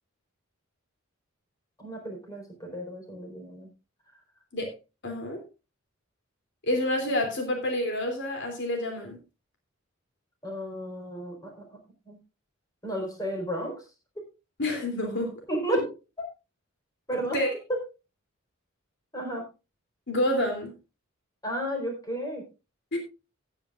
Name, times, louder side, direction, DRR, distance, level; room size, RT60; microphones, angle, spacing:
voice 1, 1.8-3.7 10.4-11.8 12.1-12.2 12.8-13.8 15.5-15.8 17.1-17.4 17.7-17.8 19.1-19.4 21.4-22.5, equal, 20° left, 1 dB, 4.3 m, -33 dB
voice 2, 5.0-5.4 6.6-9.2 14.6-15.3 15.7-15.8 17.2-17.5 20.1-20.7 22.9-23.0, left 1 dB, 60° left, 3 dB, 2.9 m, -28 dB
17.5 x 9.5 x 2.5 m, 0.29 s
head